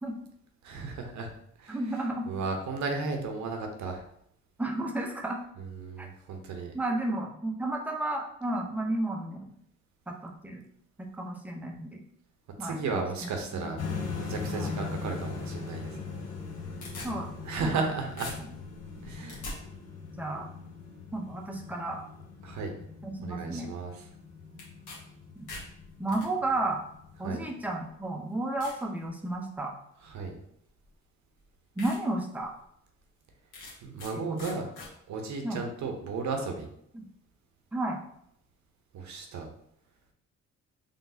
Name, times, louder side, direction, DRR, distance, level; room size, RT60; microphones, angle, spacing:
voice 1, 0.6-1.3 1.6-1.8 2.3-4.0 5.6-6.7 12.6-13.8 14.2-16.2 17.4-18.3 19.0-19.5 22.4-22.7 23.2-24.0 27.2-27.4 30.0-30.4 33.8-34.7 35.1-36.7 38.9-39.5, right 4 dB, 70° right, 4 dB, 0.8 m, -34 dB
voice 2, 1.7-2.3 4.6-5.4 6.0-6.1 6.7-9.5 10.1-10.6 11.0-12.0 12.6-13.7 14.5-14.7 17.0-17.3 17.6-17.8 20.2-20.5 21.1-22.0 23.0-23.7 25.4-25.5 26.0-26.8 27.2-29.7 31.8-32.5 34.1-34.5 35.4-35.6 36.9-37.0 37.7-38.0, right 2 dB, 5° right, 1 dB, 0.7 m, -32 dB
sound 1, 13.8-27.8, left 5 dB, 55° left, 0.9 m, -41 dB
sound 2, 16.4-17.9 18.2-19.6 24.6-25.0 25.3-26.3 27.2-27.3 27.9-28.0 28.6-28.8 29.3-29.7 30.8-30.9 31.4-31.5 31.8-32.0 32.4-32.5 33.5-34.1 34.4-34.9, left 2 dB, 80° left, 1.5 m, -43 dB
3.8 x 3.4 x 2.7 m, 0.71 s
cardioid pair, 90°, 30 cm